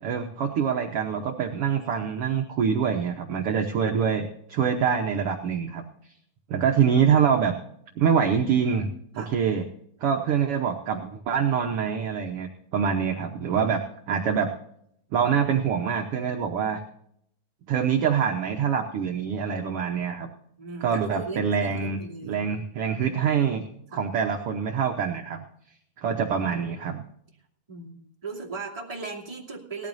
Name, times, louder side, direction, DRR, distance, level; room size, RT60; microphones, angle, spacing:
voice 1, 0.0-5.8 6.5-7.5 8.0-8.9 9.1-9.6 10.0-14.5 15.1-16.8 17.7-20.3 20.8-22.0 22.2-23.6 23.9-25.4 26.0-27.0, right 7 dB, 65° right, 3 dB, 1.5 m, -25 dB
voice 2, 20.6-22.4 23.9-24.0 27.7-29.9, right 4 dB, 10° right, -3 dB, 2.1 m, -38 dB
19.0 x 14.0 x 2.7 m, 0.70 s
omnidirectional pair, 3.6 m